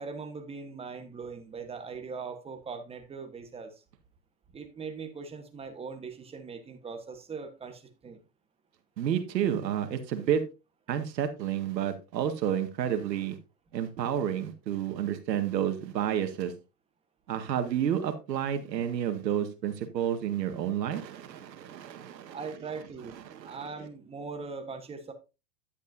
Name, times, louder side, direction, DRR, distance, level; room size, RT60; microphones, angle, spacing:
voice 1, 0.0-3.8 4.5-8.2 22.3-25.1, right 5 dB, 10° right, 1.2 m, -40 dB
voice 2, 9.0-10.4 10.9-13.4 13.7-16.5 17.3-22.4 23.2-23.6, right 9 dB, 85° right, 1.8 m, -30 dB
10.5 x 8.5 x 2.6 m
hypercardioid pair, 135°, 49 cm